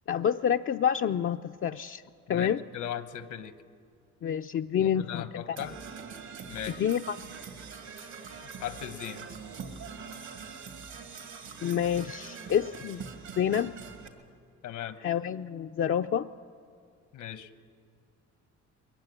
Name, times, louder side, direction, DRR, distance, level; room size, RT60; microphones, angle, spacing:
voice 1, 0.1-2.0 2.3-2.6 4.2-5.4 6.8-7.2 11.6-13.0 13.4-13.7 15.0-16.3, left 9 dB, 45° left, 5 dB, 0.5 m, -28 dB
voice 2, 2.3-3.5 4.8-5.8 6.5-6.8 8.6-9.3 14.6-15.0 17.1-17.5, left 10 dB, 75° left, 12 dB, 1.1 m, -38 dB
Percussion / Brass instrument, 5.6-14.1, right 5 dB, 70° right, 2.5 m, -43 dB
21.5 x 15.0 x 9.9 m, 2.2 s
cardioid pair, 90°, 30 cm